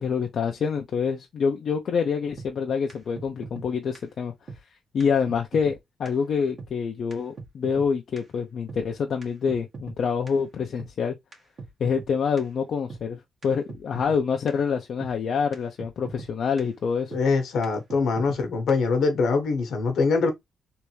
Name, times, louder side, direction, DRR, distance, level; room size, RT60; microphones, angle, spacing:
voice 1, 0.0-4.3 4.9-11.2 11.8-17.1, left 6 dB, 65° left, 0.5 m, -26 dB
sound 1, 2.4-2.5 2.9-3.0 3.2-3.7 4.0-4.1 4.5-4.6 5.0-5.1 5.3-5.8 6.1-6.2 6.6-6.7 7.1-7.2 7.4-7.9 8.2-8.3 8.7-8.8 9.2-10.0 10.3-10.4 10.8-10.9 11.3-11.4 11.6-12.1 12.4-12.5 12.9-13.0 13.4-13.5 13.7-14.2 14.5-14.6 15.0-15.1 15.5-15.6 15.8-16.3 16.6-16.7 17.1-17.2 17.6-17.7 17.9-18.4 18.7-18.8, right 4 dB, 50° right, 1.4 m, -40 dB
voice 2, 17.1-20.3, left 4 dB, 80° left, 1.1 m, -23 dB
3.4 x 2.6 x 3.0 m
cardioid pair, 95°, 0 cm